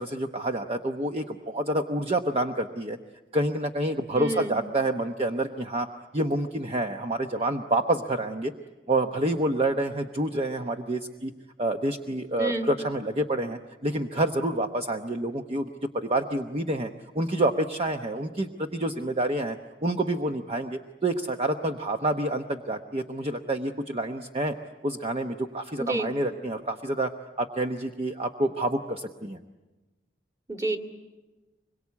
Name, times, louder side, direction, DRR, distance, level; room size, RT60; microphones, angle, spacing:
voice 1, 0.0-3.0 3.3-5.9 6.1-8.5 8.9-11.3 11.6-16.9 17.1-19.6 19.8-24.5 24.8-27.1 27.4-29.4, right 1 dB, 35° right, 5 dB, 0.9 m, -28 dB
voice 2, 4.1-4.6 12.4-12.7 25.8-26.1 30.5-30.8, right 1 dB, 20° right, 3 dB, 2.2 m, -29 dB
25.5 x 22.5 x 8.4 m, 1.2 s
head